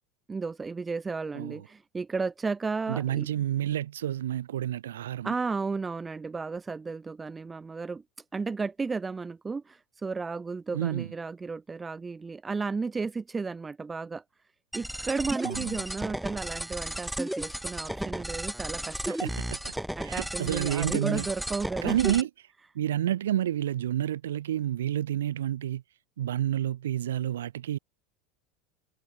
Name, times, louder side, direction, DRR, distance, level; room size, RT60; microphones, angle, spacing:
voice 1, 0.3-3.3 5.2-8.0 8.3-14.2 14.7-19.2 20.0-22.1, right 4 dB, 20° right, 1.1 m, -33 dB
voice 2, 2.9-5.4 10.7-11.1 15.4-15.8 19.1-19.7 20.0-21.3 21.8-22.3 22.7-25.8 26.2-27.8, right 11 dB, 75° right, 0.6 m, -29 dB
sound 1, 14.7-22.2, right 1 dB, 5° right, 0.7 m, -34 dB
hypercardioid pair, 85°, 0 cm